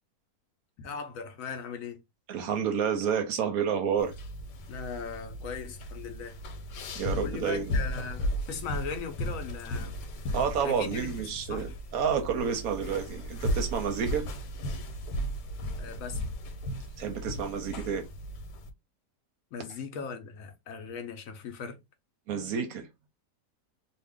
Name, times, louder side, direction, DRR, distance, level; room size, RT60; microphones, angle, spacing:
voice 1, 0.8-2.0 4.7-6.4 7.2-10.0 10.6-11.8 12.3-12.5 15.8-16.2 19.5-21.8, left 6 dB, 70° left, 0.9 m, -39 dB
voice 2, 2.3-4.1 7.0-7.7 10.3-14.2 17.0-18.1 22.3-22.9, right 7 dB, 70° right, 0.9 m, -29 dB
sound 1, 4.0-18.7, equal, 90° left, 1.2 m, -35 dB
2.6 x 2.4 x 3.4 m
omnidirectional pair, 1.7 m